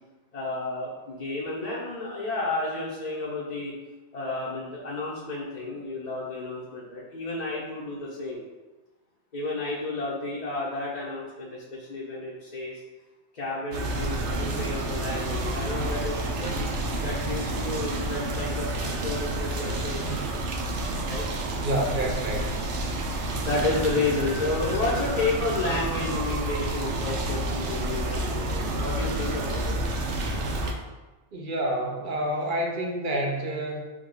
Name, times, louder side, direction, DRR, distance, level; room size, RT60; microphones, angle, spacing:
voice 1, 0.3-3.7 4.1-8.4 9.3-12.8 13.3-20.2 21.0-21.3 23.4-29.8, left 2 dB, 45° left, -7 dB, 0.8 m, -31 dB
sound 1, 13.7-30.7, right 1 dB, 80° right, 1.0 m, -29 dB
voice 2, 21.6-22.5 31.3-33.8, right 1 dB, 50° right, 0 dB, 0.8 m, -28 dB
6.1 x 2.3 x 3.8 m, 1.2 s
omnidirectional pair, 1.2 m